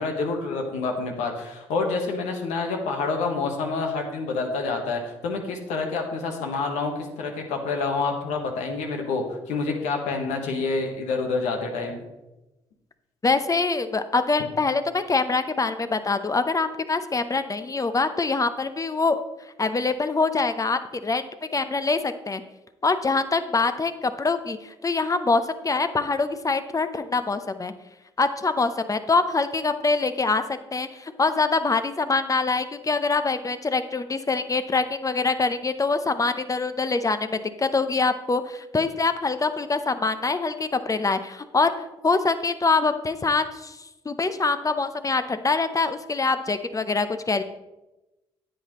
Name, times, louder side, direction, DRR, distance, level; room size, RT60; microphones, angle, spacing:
voice 1, 0.0-12.0, left 4 dB, 75° left, 3 dB, 1.4 m, -28 dB
voice 2, 13.2-19.2 19.6-22.4 22.8-27.7 28.2-30.4 30.7-41.7 42.0-43.8 44.0-47.4, left 3 dB, 30° left, 10 dB, 0.8 m, -24 dB
9.8 x 8.1 x 3.1 m, 1.0 s
hypercardioid pair, 50°, 12 cm